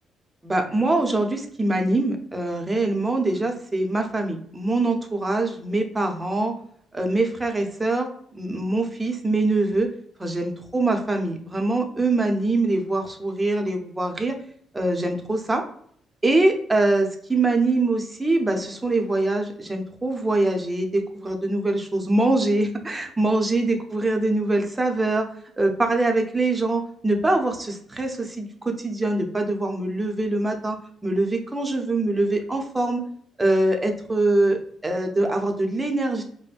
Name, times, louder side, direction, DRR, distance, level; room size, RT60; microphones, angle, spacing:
voice 1, 0.4-6.5 6.9-9.9 10.2-14.4 14.7-15.6 16.2-25.3 25.6-30.8 31.0-33.0 33.4-36.2, right 2 dB, 20° right, 3 dB, 0.7 m, -23 dB
5.0 x 2.1 x 2.5 m, 0.63 s
cardioid pair, 90°, 0 cm